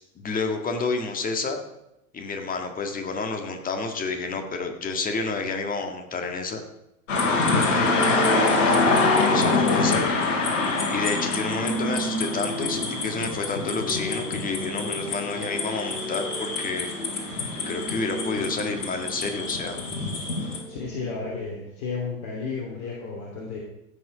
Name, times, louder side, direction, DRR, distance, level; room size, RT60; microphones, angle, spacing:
voice 1, 0.2-1.6 2.1-6.6 7.3-8.2 8.6-10.1 10.9-16.9 17.7-19.8, left 4 dB, 20° left, 5 dB, 1.8 m, -30 dB
sound 1, 7.1-20.6, left 3 dB, 60° left, 2.8 m, -26 dB
sound 2, 7.7-21.4, equal, 5° right, 4.6 m, -34 dB
voice 2, 9.3-9.9 20.7-23.6, left 4 dB, 45° left, -2 dB, 2.9 m, -33 dB
15.5 x 6.4 x 5.0 m, 0.85 s
figure-of-eight pair, 95°, 43 cm